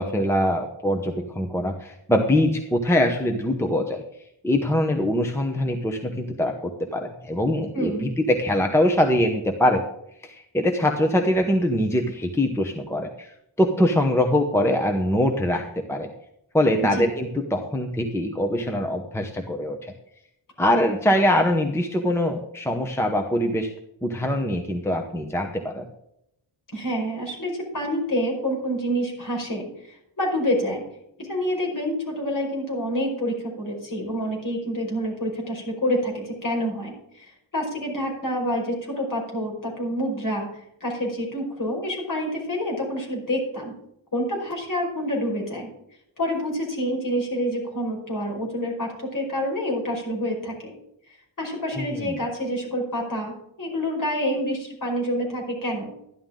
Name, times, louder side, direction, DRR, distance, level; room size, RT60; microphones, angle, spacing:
voice 1, 0.0-4.0 4.4-9.8 10.2-16.1 16.5-19.9 20.6-23.7 24.0-25.9 51.7-52.2, left 1 dB, 5° left, 3 dB, 0.9 m, -23 dB
voice 2, 7.7-8.1 16.9-17.1 26.7-30.8 31.2-40.5 40.8-43.7 44.1-45.7 46.2-50.8 51.4-53.3 53.6-55.9, equal, 45° left, -1 dB, 5.1 m, -27 dB
13.0 x 11.0 x 3.8 m, 0.78 s
wide cardioid pair, 145°, 46 cm